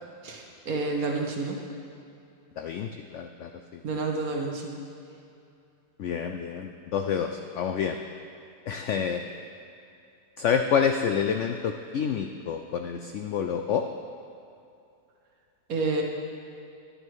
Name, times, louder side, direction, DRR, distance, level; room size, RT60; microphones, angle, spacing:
voice 1, 0.2-1.6 3.8-4.7 15.7-16.0, right 3 dB, 60° right, 0 dB, 1.6 m, -29 dB
voice 2, 2.6-3.8 6.0-8.0 8.7-9.2 10.4-13.8, left 7 dB, 85° left, 6 dB, 0.6 m, -28 dB
11.0 x 10.0 x 4.7 m, 2.6 s
omnidirectional pair, 1.8 m